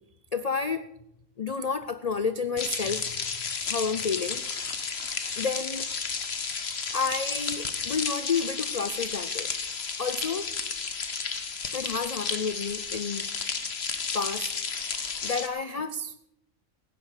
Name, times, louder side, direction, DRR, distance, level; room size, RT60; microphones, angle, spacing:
voice 1, 0.3-0.9 1.4-3.1 3.7-4.4 5.4-5.9 6.9-9.5 10.0-10.5 11.7-13.3 14.1-14.5 15.2-16.3, left 5 dB, 85° left, 12 dB, 0.3 m, -30 dB
sound 1, 2.6-15.5, left 5 dB, 50° left, 1.4 m, -32 dB
16.5 x 9.4 x 6.5 m, 0.84 s
omnidirectional pair, 1.4 m